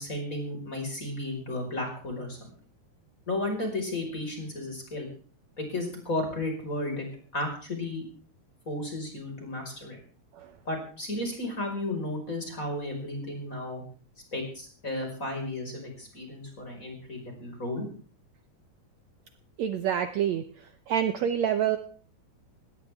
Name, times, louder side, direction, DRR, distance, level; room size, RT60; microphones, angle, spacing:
voice 1, 0.0-2.5 3.3-5.1 5.6-7.1 7.3-8.0 8.7-10.0 10.7-13.8 14.3-17.9, left 1 dB, 20° left, 2 dB, 5.5 m, -33 dB
voice 2, 19.6-20.4 20.9-21.8, right 9 dB, 80° right, 9 dB, 1.5 m, -26 dB
20.5 x 17.0 x 3.6 m, 0.43 s
omnidirectional pair, 4.3 m